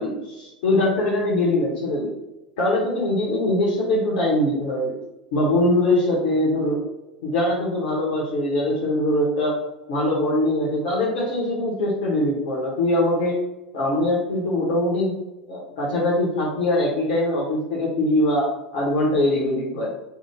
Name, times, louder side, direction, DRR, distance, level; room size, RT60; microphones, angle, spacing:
voice 1, 0.0-2.1 2.6-5.0 5.3-6.8 7.2-9.6 9.9-13.4 13.7-15.1 15.5-19.9, left 1 dB, 55° left, -4 dB, 0.8 m, -22 dB
3.4 x 2.0 x 3.2 m, 0.96 s
figure-of-eight pair, 85°, 5 cm